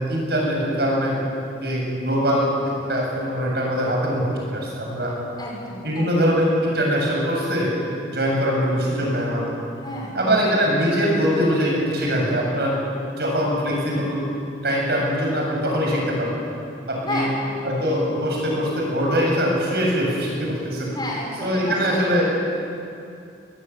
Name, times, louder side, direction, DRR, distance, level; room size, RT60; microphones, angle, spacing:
voice 1, 0.1-1.2 1.6-2.5 2.9-5.1 5.8-7.7 8.1-9.5 10.1-12.7 13.2-14.2 14.6-16.3 16.9-17.3 17.6-20.9 21.4-22.2, equal, 60° right, -2 dB, 7.8 m, -22 dB
voice 2, 5.4-6.1 9.8-10.2 17.0-17.4 20.9-21.8, left 1 dB, 25° left, -3 dB, 6.1 m, -31 dB
21.5 x 20.5 x 8.7 m, 2.5 s
head